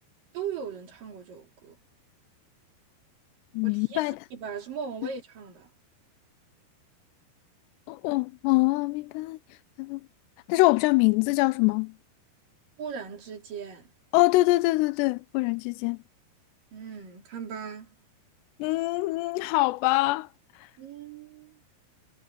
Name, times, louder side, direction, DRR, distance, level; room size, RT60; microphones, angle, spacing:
voice 1, 0.3-1.8 3.6-5.7 12.8-13.9 16.7-18.0 20.8-21.6, right 6 dB, 50° right, 4.6 m, -38 dB
voice 2, 3.5-4.2 7.9-9.4 9.8-10.0 10.5-11.9 14.1-16.0 18.6-20.3, left 21 dB, 80° left, 2.7 m, -24 dB
omnidirectional pair, 5.3 m